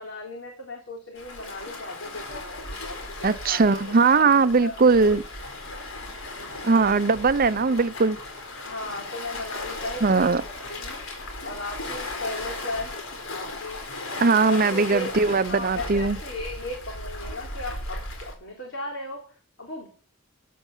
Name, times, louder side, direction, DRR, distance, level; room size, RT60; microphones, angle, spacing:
voice 1, 0.0-3.8 4.1-5.1 6.4-7.1 7.6-7.7 8.6-11.0 11.4-15.1 15.5-19.9, left 2 dB, 65° left, 3.6 m, -37 dB
Waves surf, 1.1-18.3, left 2 dB, 85° left, 4.7 m, -36 dB
voice 2, 3.2-5.2 6.6-8.2 10.0-10.4 14.2-16.2, right 4 dB, 45° right, 0.6 m, -20 dB
14.5 x 9.4 x 7.3 m
head